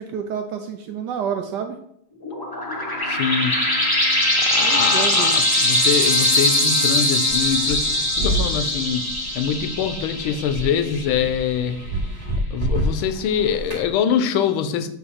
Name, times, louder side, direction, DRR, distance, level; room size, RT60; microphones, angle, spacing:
voice 1, 0.0-1.8 4.6-5.4 10.3-10.4, right 7 dB, 75° right, 6 dB, 1.0 m, -29 dB
sound 1, 2.2-11.4, left 1 dB, 15° left, 0.8 m, -21 dB
voice 2, 3.0-3.6 4.4-9.1 9.3-11.8 12.5-14.9, left 8 dB, 85° left, 10 dB, 1.5 m, -24 dB
sound 2, 7.3-13.9, right 1 dB, 25° right, 2.0 m, -29 dB
7.8 x 3.0 x 5.6 m, 0.73 s
omnidirectional pair, 2.3 m